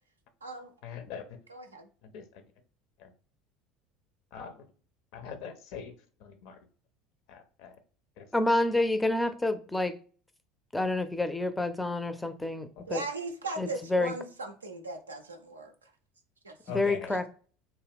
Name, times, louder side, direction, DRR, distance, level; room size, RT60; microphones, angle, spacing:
voice 1, 0.8-1.4 2.0-2.3 3.0-3.1 4.3-4.7 5.1-6.6 7.3-7.8 8.2-8.3 12.8-12.9 16.6-17.1, left 6 dB, 60° left, 0.5 m, -42 dB
voice 2, 1.5-1.9 12.9-15.9 16.4-16.6 17.1-17.2, right 3 dB, 85° right, 0.4 m, -38 dB
voice 3, 8.3-10.0 10.7-13.0 13.6-14.1 16.7-17.3, left 2 dB, 10° left, 0.4 m, -28 dB
2.9 x 2.2 x 3.4 m
figure-of-eight pair, 70°, 0 cm